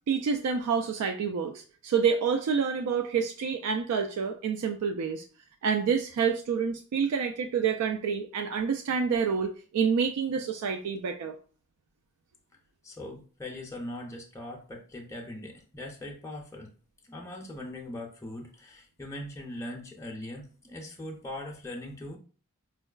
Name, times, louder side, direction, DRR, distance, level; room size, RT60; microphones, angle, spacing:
voice 1, 0.1-5.2 5.6-11.4, right 6 dB, 90° right, 5 dB, 0.3 m, -28 dB
voice 2, 12.8-16.7 17.1-22.2, left 1 dB, 15° left, -1 dB, 0.4 m, -40 dB
4.4 x 2.3 x 2.3 m, 0.39 s
head